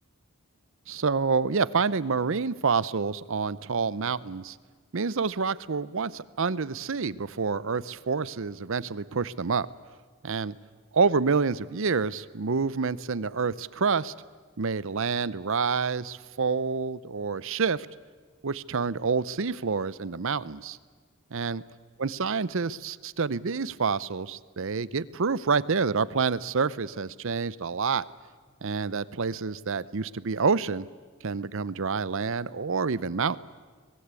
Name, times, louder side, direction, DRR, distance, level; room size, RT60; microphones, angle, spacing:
voice 1, 0.9-4.6 4.9-9.7 10.2-10.6 10.9-14.1 14.6-17.9 18.4-20.8 21.3-21.6 22.0-28.0 28.6-30.9 31.2-33.4, right 5 dB, 65° right, 18 dB, 0.7 m, -28 dB
25.0 x 20.0 x 8.3 m, 1.5 s
head